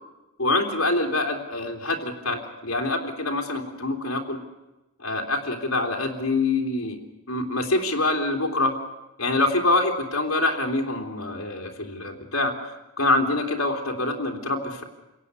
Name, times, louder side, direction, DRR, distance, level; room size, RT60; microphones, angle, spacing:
voice 1, 0.4-4.4 5.0-7.0 7.3-8.7 9.2-12.5 13.0-14.8, left 2 dB, 75° left, 2 dB, 3.4 m, -25 dB
28.0 x 17.0 x 9.7 m, 1.0 s
head